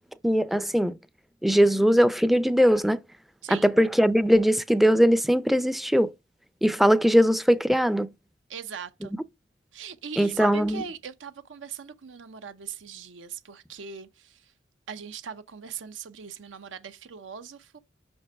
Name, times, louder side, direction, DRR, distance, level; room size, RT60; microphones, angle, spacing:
voice 1, 0.2-1.0 1.4-3.0 3.5-6.1 6.6-8.1 10.2-10.8, equal, ahead, 0.4 m, -20 dB
voice 2, 3.4-3.8 8.5-9.1 9.7-14.5 14.9-17.8, right 7 dB, 85° right, 0.6 m, -40 dB
5.9 x 5.3 x 3.4 m
head